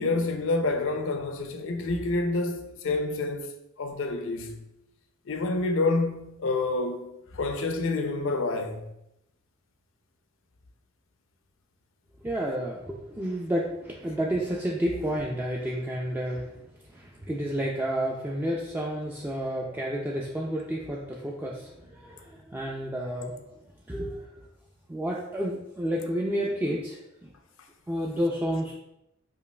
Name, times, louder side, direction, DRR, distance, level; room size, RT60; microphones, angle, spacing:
voice 1, 0.0-3.5 3.8-4.6 5.3-8.9, left 3 dB, 70° left, 0.5 m, -28 dB
voice 2, 12.2-24.5 24.9-27.3 27.9-28.7, equal, 10° right, 0.3 m, -31 dB
5.2 x 2.4 x 2.2 m
head